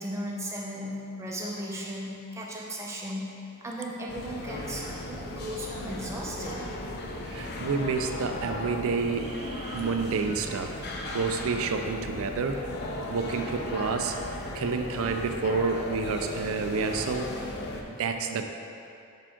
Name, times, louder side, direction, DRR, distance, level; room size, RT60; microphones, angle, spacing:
voice 1, 0.0-3.3 3.6-6.6, equal, 15° right, -4 dB, 0.7 m, -36 dB
sound 1, 4.1-17.8, left 1 dB, 45° left, 0.5 m, -36 dB
voice 2, 7.3-10.8 11.1-12.6 13.1-14.2 14.5-17.3 17.9-18.5, right 4 dB, 65° right, 6 dB, 0.4 m, -29 dB
5.5 x 4.9 x 3.6 m, 2.6 s
head